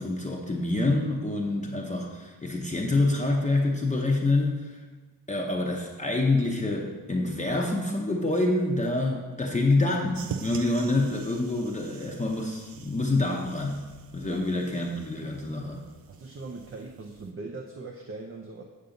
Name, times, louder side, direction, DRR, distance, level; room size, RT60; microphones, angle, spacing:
voice 1, 0.0-4.8 5.3-13.8 14.1-15.8, left 2 dB, 20° left, -2 dB, 0.7 m, -27 dB
sound 1, 10.1-17.3, right 7 dB, 85° right, 0.5 m, -44 dB
voice 2, 16.1-18.6, right 3 dB, 40° right, 2 dB, 0.6 m, -40 dB
8.5 x 6.7 x 3.8 m, 1.4 s
wide cardioid pair, 170°, 34 cm